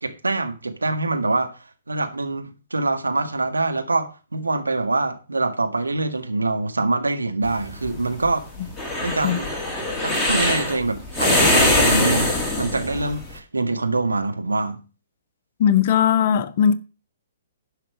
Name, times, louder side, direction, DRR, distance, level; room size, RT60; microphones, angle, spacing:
voice 1, 0.0-1.5 1.9-8.5 9.0-9.5 10.0-14.8, right 3 dB, 75° right, 1.6 m, -24 dB
sound 1, 7.4-13.3, left 1 dB, 5° left, 2.4 m, -22 dB
voice 2, 15.6-16.8, left 8 dB, 40° left, 0.9 m, -18 dB
11.0 x 5.7 x 6.2 m
figure-of-eight pair, 120°, 0 cm